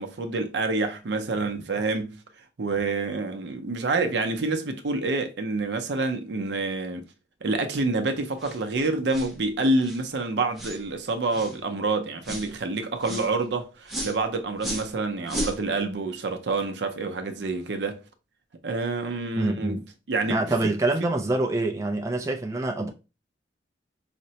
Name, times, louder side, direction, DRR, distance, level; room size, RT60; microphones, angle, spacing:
voice 1, 0.0-2.2 2.6-7.1 7.4-18.0 18.6-19.8 20.1-21.1, right 3 dB, 75° right, 0.6 m, -27 dB
sound 1, 8.4-8.6 9.1-9.3 9.8-10.0 10.6-10.8 11.3-11.6 12.2-12.5 13.0-13.3 13.9-14.2 14.6-14.9 15.3-15.6, right 1 dB, ahead, 0.8 m, -33 dB
voice 2, 19.4-19.8 20.3-22.9, right 2 dB, 15° right, 0.3 m, -26 dB
4.9 x 2.1 x 2.7 m
head